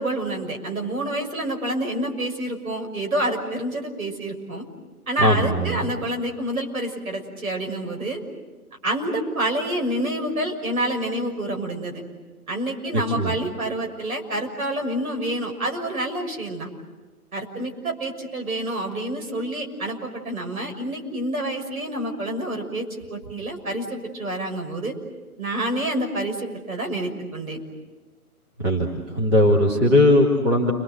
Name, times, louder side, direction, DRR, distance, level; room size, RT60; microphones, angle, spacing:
voice 1, 0.0-4.6 5.1-8.2 8.8-12.0 12.5-16.7 17.3-24.9 25.4-27.6, right 1 dB, 65° right, 2 dB, 6.6 m, -28 dB
voice 2, 5.2-5.9 12.9-13.4 28.6-28.9 29.1-30.7, left 1 dB, 15° right, -2 dB, 2.6 m, -19 dB
30.0 x 24.5 x 8.1 m, 1.3 s
figure-of-eight pair, 160°, 45 cm